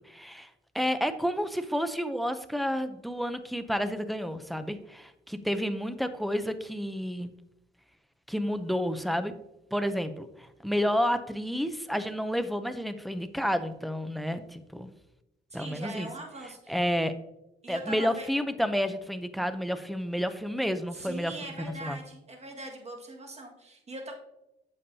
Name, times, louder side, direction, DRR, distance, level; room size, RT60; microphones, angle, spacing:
voice 1, 0.1-0.5 0.7-7.3 8.3-9.3 9.7-14.9 15.5-16.1 16.7-17.1 17.7-22.0, equal, ahead, 10 dB, 0.6 m, -30 dB
voice 2, 15.5-16.8 17.6-18.3 20.9-24.1, right 1 dB, 35° right, 1 dB, 1.8 m, -41 dB
8.3 x 6.9 x 2.8 m, 0.91 s
cardioid pair, 90°, 20 cm